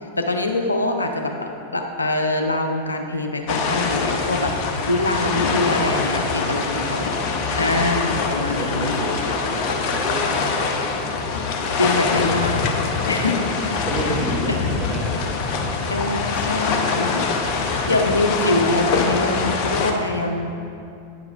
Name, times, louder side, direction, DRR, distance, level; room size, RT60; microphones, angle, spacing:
voice 1, 0.2-7.1 7.6-9.0 11.8-12.6 13.1-13.3 14.6-14.7 15.9-17.3 17.6-20.6, left 2 dB, 80° left, 4 dB, 0.6 m, -24 dB
sound 1, 3.5-19.9, left 4 dB, 45° left, 0.7 m, -24 dB
voice 2, 5.2-5.5 6.6-7.7 8.5-11.2 13.1-15.8, right 1 dB, 30° right, -1 dB, 1.2 m, -32 dB
9.3 x 6.9 x 3.3 m, 2.6 s
figure-of-eight pair, 90°, 0 cm